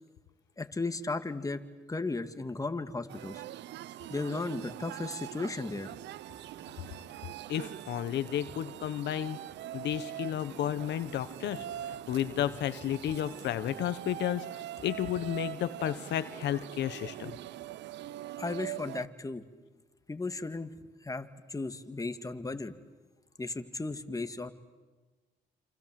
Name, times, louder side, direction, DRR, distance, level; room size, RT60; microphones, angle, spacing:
voice 1, 0.6-1.6 1.9-3.4 4.1-5.9 18.4-19.4 20.1-20.7 21.0-22.7 23.4-24.5, left 3 dB, 20° left, 8 dB, 2.1 m, -35 dB
sound 1, 3.1-19.1, right 13 dB, 85° right, 0.8 m, -43 dB
voice 2, 7.5-9.4 9.7-14.4 14.8-17.3, left 11 dB, 80° left, 13 dB, 1.2 m, -32 dB
27.5 x 27.5 x 7.7 m, 1.3 s
cardioid pair, 75°, 18 cm